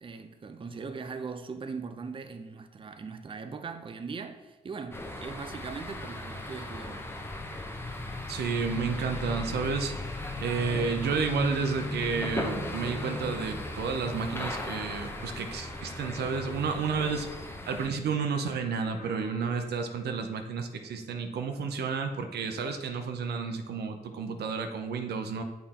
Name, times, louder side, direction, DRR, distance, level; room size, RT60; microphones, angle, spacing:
voice 1, 0.0-7.1, right 5 dB, 30° right, 0.5 m, -40 dB
sound 1, 4.9-17.9, left 1 dB, 15° left, 0.8 m, -37 dB
voice 2, 8.3-9.9 10.4-17.3 17.7-25.4, right 5 dB, 80° right, 0.6 m, -31 dB
sound 2, 10.8-17.5 18.2-21.0, left 4 dB, 90° left, 1.1 m, -51 dB
6.7 x 3.8 x 4.3 m
cardioid pair, 70°, 17 cm